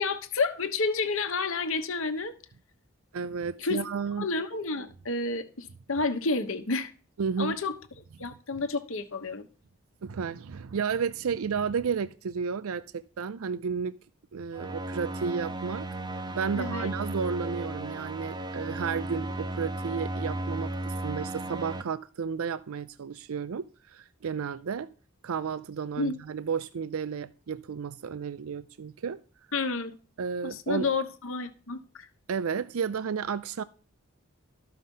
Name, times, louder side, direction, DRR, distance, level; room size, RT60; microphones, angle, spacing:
voice 1, 0.0-2.3 3.6-3.8 4.2-6.9 7.4-7.7 8.2-9.5 16.5-16.9 26.0-26.2 29.5-29.9 30.4-32.1, left 3 dB, 70° left, 1.1 m, -30 dB
voice 2, 3.1-4.3 7.2-7.6 10.0-14.0 14.3-15.9 16.3-24.9 25.2-29.2 30.2-30.9 32.3-33.6, right 6 dB, 75° right, 0.4 m, -32 dB
sound 1, 14.5-21.8, right 1 dB, 20° right, 0.6 m, -35 dB
13.0 x 5.8 x 5.4 m
head